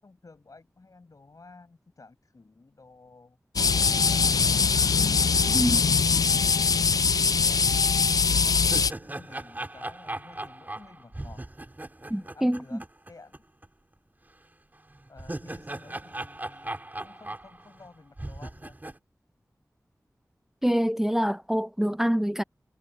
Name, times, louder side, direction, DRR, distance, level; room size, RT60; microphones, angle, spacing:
voice 1, 0.0-3.4 3.8-4.9 7.4-7.7 8.0-11.4 12.1-12.8 13.1-13.4 15.1-18.8, left 3 dB, 70° left, 7.4 m, -52 dB
sound 1, 3.6-8.9, left 5 dB, 90° left, 0.3 m, -22 dB
sound 2, 7.8-7.9 8.3-13.4 13.6-13.7 14.9-17.9 18.2-19.0, right 1 dB, 30° right, 2.7 m, -38 dB
voice 2, 12.1-12.8 20.6-22.4, equal, 5° right, 0.4 m, -25 dB
wide cardioid pair, 75°, 6 cm